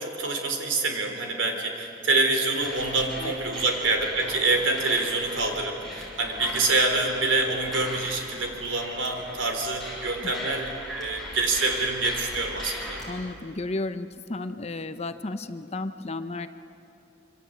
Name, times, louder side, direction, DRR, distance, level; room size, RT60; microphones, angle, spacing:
voice 1, 0.0-13.0, right 3 dB, 80° right, 4 dB, 3.7 m, -26 dB
sound 1, 2.6-13.1, left 1 dB, ahead, 6.1 m, -39 dB
voice 2, 13.1-16.5, left 2 dB, 35° left, 10 dB, 0.8 m, -33 dB
25.5 x 25.0 x 8.6 m, 2.8 s
head